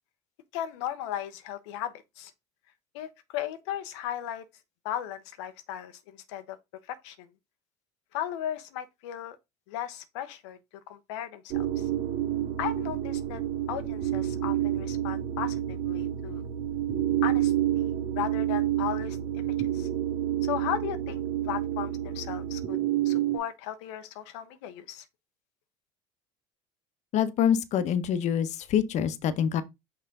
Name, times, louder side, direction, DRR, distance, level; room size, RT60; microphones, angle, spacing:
voice 1, 0.5-2.3 2.9-4.4 4.8-6.6 6.9-7.2 8.1-9.4 9.7-10.6 10.9-11.9 12.6-13.4 13.7-16.4 17.2-19.9 20.4-21.2 21.5-22.8 23.0-25.0, left 11 dB, 85° left, 0.7 m, -36 dB
sound 1, 11.5-23.4, right 12 dB, 65° right, 2.1 m, -29 dB
voice 2, 27.1-29.6, left 8 dB, 55° left, 1.0 m, -25 dB
5.7 x 4.9 x 3.8 m
supercardioid pair, 100°, 14 cm